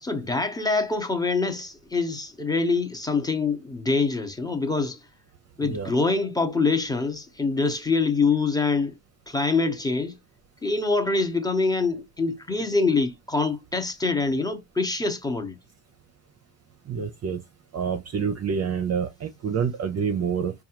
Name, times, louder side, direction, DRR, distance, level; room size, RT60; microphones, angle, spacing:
voice 1, 0.0-5.0 5.6-9.0 9.3-10.2 10.6-15.6, left 3 dB, 10° left, 0.9 m, -25 dB
voice 2, 16.9-17.4 17.7-20.5, right 6 dB, 35° right, 0.6 m, -27 dB
4.6 x 2.3 x 2.9 m
cardioid pair, 110°, 46 cm